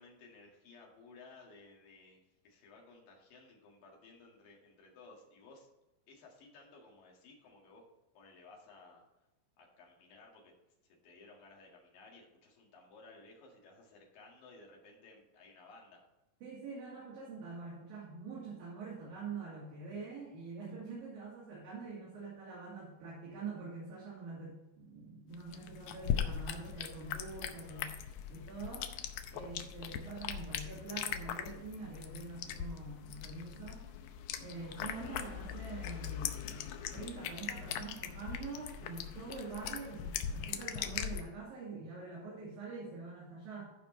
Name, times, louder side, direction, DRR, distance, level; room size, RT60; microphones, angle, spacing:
voice 1, 0.0-5.7 6.1-7.8 8.2-9.0 9.6-10.5 10.8-16.0 27.7-27.9 35.0-35.3, left 3 dB, 60° left, -1 dB, 3.5 m, -57 dB
voice 2, 16.4-27.9 28.3-28.9 29.3-33.9 34.4-43.7, right 4 dB, 60° right, -7 dB, 4.4 m, -45 dB
sound 1, 25.3-41.2, left 9 dB, 80° left, 2.2 m, -40 dB
14.5 x 5.1 x 4.4 m, 0.99 s
omnidirectional pair, 4.7 m